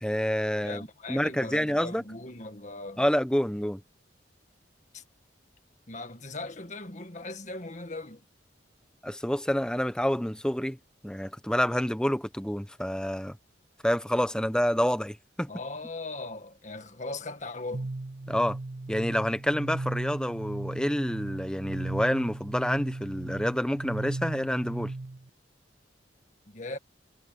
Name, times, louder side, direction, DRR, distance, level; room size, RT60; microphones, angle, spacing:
voice 1, 0.0-0.8 1.1-2.0 3.0-3.8 9.0-10.8 11.0-13.4 13.8-15.5 18.3-18.6 18.9-24.9, equal, 5° left, 1.1 m, -28 dB
voice 2, 0.6-3.0 4.9-5.0 5.9-8.2 15.5-17.9 26.5-26.8, left 2 dB, 40° left, 1.9 m, -39 dB
sound 1, 17.7-25.3, right 2 dB, 60° right, 0.7 m, -36 dB
head